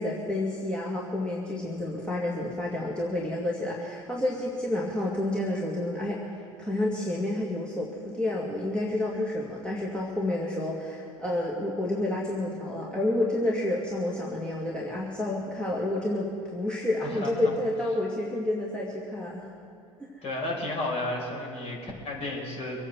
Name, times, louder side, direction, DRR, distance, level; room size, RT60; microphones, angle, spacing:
voice 1, 0.0-19.5, left 1 dB, 5° left, -4 dB, 2.2 m, -29 dB
voice 2, 17.0-17.6 20.2-22.8, left 2 dB, 35° left, -2 dB, 5.2 m, -32 dB
24.0 x 8.9 x 6.2 m, 2.5 s
figure-of-eight pair, 75°, 18 cm